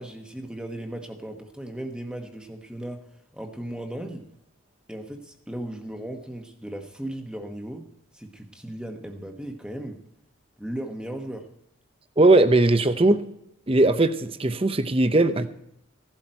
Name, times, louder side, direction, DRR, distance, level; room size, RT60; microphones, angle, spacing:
voice 1, 0.0-3.0 3.3-4.2 4.9-7.9 8.1-10.0 10.6-11.5, right 1 dB, 5° right, 4 dB, 1.2 m, -36 dB
voice 2, 12.2-13.2 13.7-15.5, right 2 dB, 25° right, 11 dB, 0.7 m, -19 dB
16.5 x 12.0 x 4.5 m, 0.80 s
head